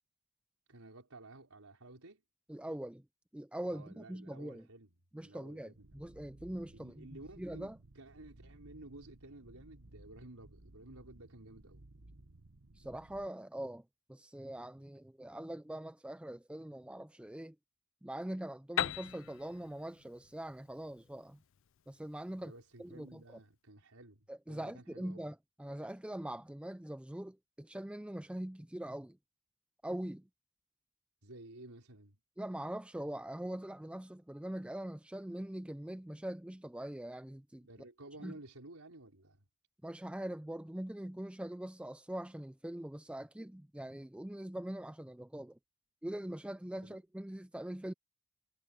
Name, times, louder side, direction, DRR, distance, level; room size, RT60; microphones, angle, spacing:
voice 1, 0.7-2.2 3.7-4.9 5.2-6.0 6.7-11.9 22.4-25.2 31.2-32.2 37.6-39.5 46.8-47.0, right 2 dB, 80° right, 4.2 m, -54 dB
voice 2, 2.5-3.0 3.3-4.7 5.1-7.8 12.8-17.6 18.0-21.4 21.9-22.5 22.8-23.4 24.3-29.2 29.8-30.3 32.4-37.7 38.2-38.4 39.8-45.6 46.0-47.9, right 1 dB, 5° right, 0.4 m, -43 dB
sound 1, 5.7-13.3, right 2 dB, 65° right, 1.4 m, -58 dB
Piano, 18.8-22.4, left 10 dB, 60° left, 0.5 m, -40 dB
head